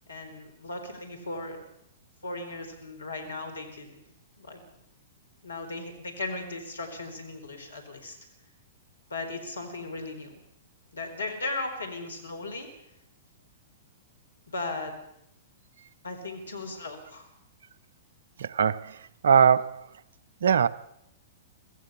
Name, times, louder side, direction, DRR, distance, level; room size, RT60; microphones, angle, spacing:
voice 1, 0.1-1.6 2.2-4.0 4.4-4.6 5.4-8.2 9.1-10.3 10.9-12.7 14.5-14.9 16.0-17.3, left 2 dB, 85° left, 6 dB, 4.4 m, -37 dB
voice 2, 18.4-19.9 20.4-20.7, right 7 dB, 70° right, 15 dB, 0.8 m, -22 dB
25.0 x 15.5 x 7.1 m, 0.79 s
hypercardioid pair, 110°, 0 cm